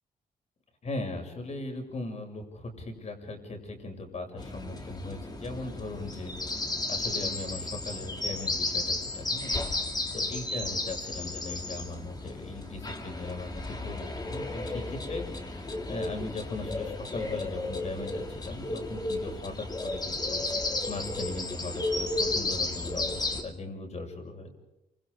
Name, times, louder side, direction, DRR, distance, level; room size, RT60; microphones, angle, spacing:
voice 1, 0.8-24.5, left 2 dB, 50° left, 4 dB, 6.8 m, -39 dB
sound 1, 4.4-23.4, left 2 dB, 25° left, 3.0 m, -33 dB
29.5 x 26.5 x 5.0 m, 0.92 s
cardioid pair, 100°, 15 cm